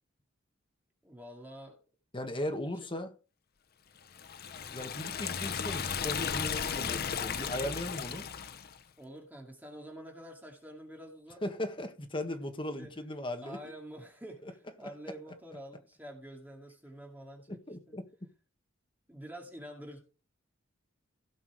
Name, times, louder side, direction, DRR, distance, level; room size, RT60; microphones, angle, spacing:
voice 1, 1.0-1.8 9.0-11.4 12.8-12.9 13.4-17.6 17.9-18.0 19.1-20.0, equal, 10° right, 2.2 m, -47 dB
voice 2, 2.1-3.1 4.7-8.3 11.4-13.6 14.4-14.5 14.8-15.1 17.5-18.0, left 1 dB, 25° left, 1.6 m, -38 dB
Liquid, 4.1-8.8, left 7 dB, 50° left, 0.7 m, -35 dB
17.0 x 6.0 x 4.8 m
head